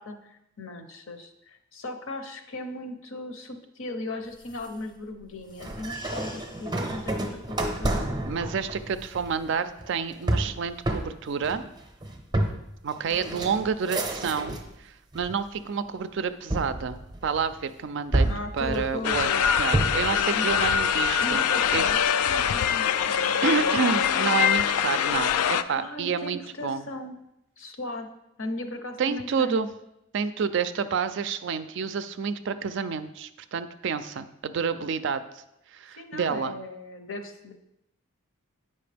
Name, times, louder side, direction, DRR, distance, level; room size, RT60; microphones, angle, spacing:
voice 1, 0.0-7.1 7.5-8.1 13.1-13.4 18.2-19.5 20.3-20.5 21.2-23.7 25.7-27.2 27.6-28.1 28.4-29.6 35.9-37.5, left 2 dB, 65° left, 7 dB, 0.7 m, -37 dB
sound 1, 4.2-8.0, left 2 dB, 20° left, 0.5 m, -48 dB
sound 2, 5.6-14.8 15.1-15.8 16.5-17.6 18.1-20.2, right 1 dB, 20° right, 0.6 m, -30 dB
voice 2, 8.2-11.6 12.8-18.3 18.5-19.3 19.6-21.5 21.7-21.9 23.4-26.8 29.0-29.7 30.1-35.2 35.7-36.5, right 6 dB, 55° right, 11 dB, 0.4 m, -29 dB
sound 3, 19.0-25.6, left 8 dB, 85° left, 0.3 m, -24 dB
8.5 x 5.5 x 3.4 m, 0.85 s
head